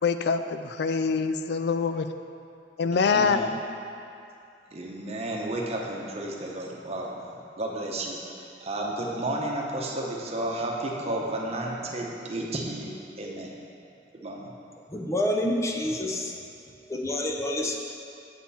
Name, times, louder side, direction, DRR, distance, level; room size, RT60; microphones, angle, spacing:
voice 1, 0.0-2.1 2.8-3.5, left 5 dB, 65° left, 9 dB, 0.4 m, -25 dB
voice 2, 2.9-3.5 4.7-13.6 14.1-14.5, right 1 dB, 35° right, -1 dB, 1.0 m, -32 dB
voice 3, 14.9-16.3 16.9-17.8, left 1 dB, 15° left, 1 dB, 0.7 m, -28 dB
7.7 x 7.3 x 4.2 m, 2.6 s
head